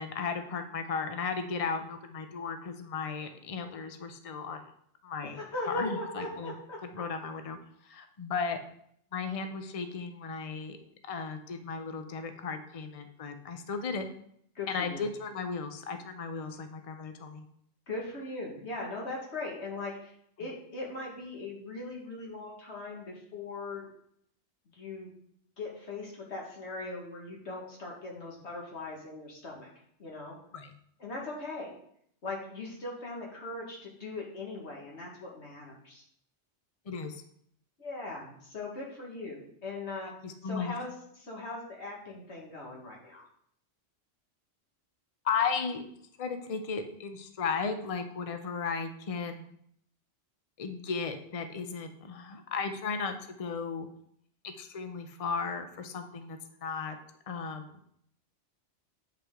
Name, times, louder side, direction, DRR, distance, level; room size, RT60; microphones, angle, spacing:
voice 1, 0.0-4.7 5.0-5.4 5.7-6.5 6.8-7.6 7.8-8.6 9.1-10.8 11.1-14.1 14.7-17.5 30.5-30.7 36.9-37.2 40.2-40.7 45.2-45.8 46.2-49.5 50.6-53.9 54.4-57.0 57.3-57.8, left 5 dB, 35° left, 7 dB, 0.7 m, -35 dB
voice 2, 5.2-7.0 14.6-15.1 17.9-23.9 24.7-25.1 25.6-29.7 30.0-30.4 31.0-31.7 32.2-36.0 37.8-40.1 40.4-43.3, left 2 dB, 70° left, -2 dB, 2.1 m, -40 dB
8.0 x 5.8 x 3.7 m, 0.68 s
omnidirectional pair, 1.2 m